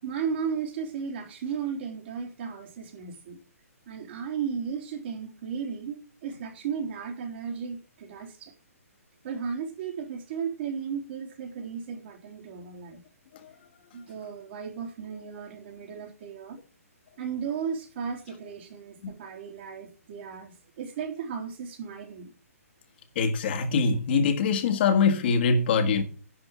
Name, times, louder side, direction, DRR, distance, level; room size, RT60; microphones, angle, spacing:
voice 1, 0.0-3.4 3.9-8.5 9.2-13.0 13.9-16.6 17.2-22.3, right 6 dB, 45° right, 3.7 m, -35 dB
voice 2, 23.2-26.0, left 5 dB, 40° left, 1.8 m, -23 dB
11.0 x 5.1 x 8.4 m
hypercardioid pair, 150°, 8 cm